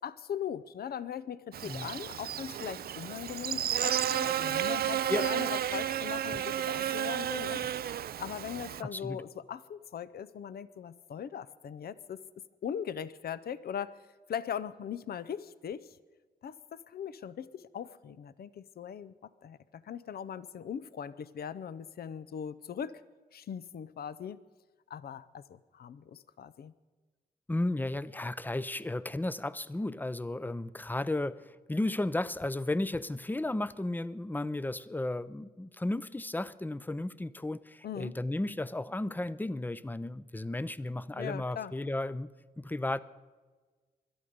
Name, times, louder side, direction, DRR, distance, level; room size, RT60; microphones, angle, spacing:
voice 1, 0.0-7.6 8.2-12.2 12.6-14.0 14.3-15.9 16.4-23.0 23.3-24.4 24.9-26.7 37.8-38.1 41.2-41.7, left 8 dB, 70° left, 16 dB, 0.6 m, -40 dB
Buzz, 1.5-8.8, right 10 dB, 70° right, 0.4 m, -32 dB
voice 2, 8.8-9.2 27.5-42.3 42.6-43.0, left 2 dB, 10° left, 17 dB, 0.5 m, -34 dB
21.5 x 12.5 x 5.2 m, 1.4 s
cardioid pair, 75°, 16 cm